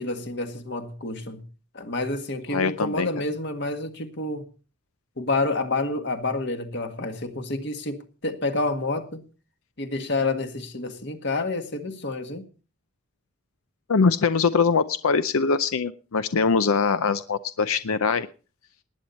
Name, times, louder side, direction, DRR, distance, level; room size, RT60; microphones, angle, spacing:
voice 1, 0.0-1.4 1.7-4.5 5.2-9.2 9.8-12.5, left 2 dB, 55° left, 1.8 m, -29 dB
voice 2, 2.5-3.1 13.9-18.3, left 5 dB, 90° left, 0.6 m, -22 dB
19.0 x 9.4 x 4.2 m
head